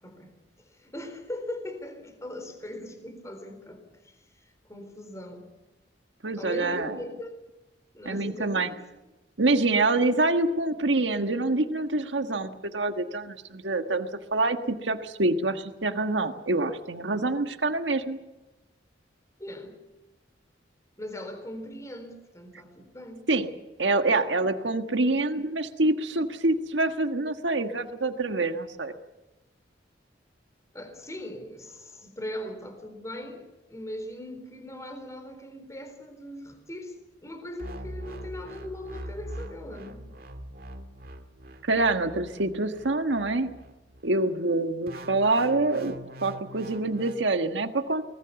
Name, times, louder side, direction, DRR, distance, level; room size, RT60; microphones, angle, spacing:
voice 1, 0.0-4.2 4.7-5.5 6.4-7.4 7.9-8.8 19.4-19.7 21.0-23.2 30.7-40.0, left 1 dB, 15° left, 7 dB, 4.0 m, -40 dB
voice 2, 6.2-7.0 8.0-8.7 9.4-18.2 23.3-23.5 23.8-28.9 41.6-43.5 44.0-45.9 46.2-48.0, right 2 dB, 85° right, 7 dB, 1.5 m, -26 dB
sound 1, 37.6-44.1 44.9-47.2, right 1 dB, 55° right, 2.0 m, -42 dB
24.0 x 20.0 x 7.0 m, 1.0 s
head